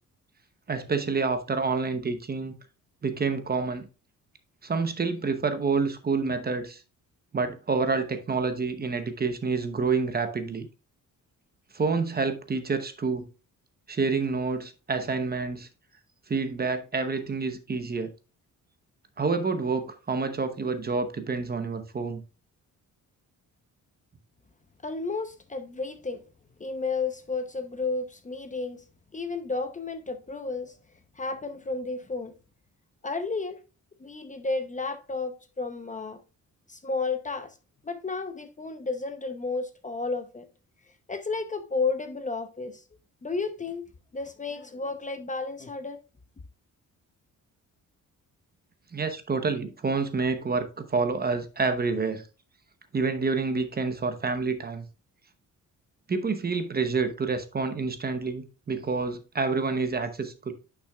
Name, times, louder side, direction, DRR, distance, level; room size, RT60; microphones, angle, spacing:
voice 1, 0.7-2.5 3.0-3.9 4.6-6.8 7.3-10.7 11.7-13.3 13.9-15.7 16.3-18.1 19.2-22.2 48.9-52.2 52.9-54.9 56.1-60.5, right 4 dB, 30° right, 0.9 m, -28 dB
voice 2, 24.8-26.2 26.6-28.8 29.1-30.8 31.2-32.3 33.0-33.6 34.0-36.2 36.7-37.6 37.8-40.4 41.1-42.8 43.2-43.8 44.1-46.0, left 4 dB, 25° left, 0.7 m, -32 dB
10.0 x 5.9 x 2.3 m
cardioid pair, 135°, 33 cm